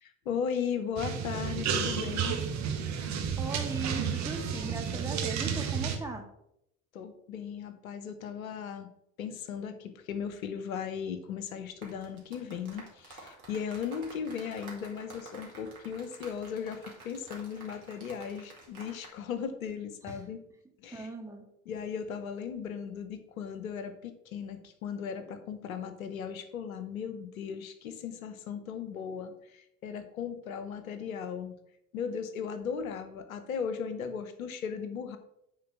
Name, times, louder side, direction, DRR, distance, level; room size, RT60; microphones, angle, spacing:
voice 1, 0.0-2.4 6.9-8.9 9.2-20.4 20.8-21.1 21.7-31.6 31.9-35.2, left 7 dB, 75° left, 10 dB, 1.0 m, -37 dB
sound 1, 1.0-6.0, right 7 dB, 40° right, 1.5 m, -31 dB
voice 2, 3.4-6.3 20.0-20.3 20.9-21.4, right 3 dB, 5° right, 1 dB, 1.9 m, -39 dB
sound 2, 11.7-19.2 19.4-19.7, right 2 dB, 85° right, 2.2 m, -50 dB
9.7 x 3.9 x 5.9 m, 0.79 s
figure-of-eight pair, 70°, 42 cm